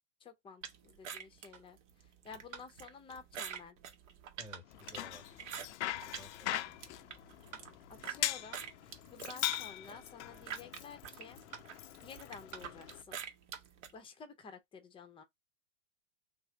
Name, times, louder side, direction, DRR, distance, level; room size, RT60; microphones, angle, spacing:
voice 1, 0.2-1.8 2.2-3.8 7.9-8.7 9.1-11.4 12.0-13.2 13.9-15.2, left 5 dB, 15° left, 0.6 m, -51 dB
sound 1, 0.6-6.3 6.7-8.2 8.5-13.9, right 8 dB, 70° right, 0.9 m, -47 dB
sound 2, 1.5-1.7 2.5-2.7 3.5-3.7 4.5-4.7 5.5-5.7 6.5-6.7 7.5-7.7 8.5-8.7 9.5-9.7 10.5-10.7 11.5-11.7 12.5-12.7 13.5-13.7, right 6 dB, 40° right, 1.0 m, -48 dB
voice 2, 4.4-5.5 5.8-6.9, equal, 15° right, 1.1 m, -56 dB
Bicycle, 4.7-13.0, left 14 dB, 65° left, 0.5 m, -41 dB
3.2 x 2.0 x 3.7 m
hypercardioid pair, 115°, 38 cm